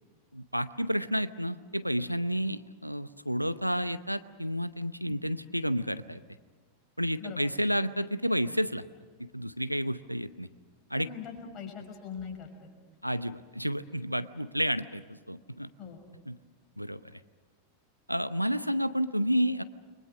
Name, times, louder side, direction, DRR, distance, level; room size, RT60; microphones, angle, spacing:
voice 1, 0.3-6.2 7.0-8.8 9.3-10.5 10.9-11.1 13.0-15.7 16.3-16.4 16.8-17.2 18.1-19.6, equal, 90° right, 14 dB, 0.7 m, -30 dB
voice 2, 11.0-12.7 15.8-16.0, left 7 dB, 30° left, 3 dB, 5.6 m, -42 dB
29.5 x 23.0 x 6.5 m, 1.5 s
figure-of-eight pair, 90°, 0 cm